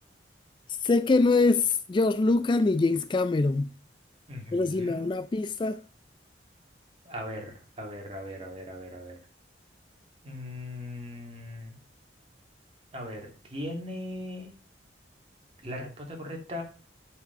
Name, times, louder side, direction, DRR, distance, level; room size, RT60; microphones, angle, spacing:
voice 1, 0.8-3.7 4.5-5.8, left 3 dB, 25° left, 0.3 m, -24 dB
voice 2, 4.3-5.1 7.0-9.1 10.2-11.8 12.9-14.5 15.6-16.6, left 1 dB, 30° right, 2.6 m, -39 dB
8.2 x 5.0 x 5.6 m
head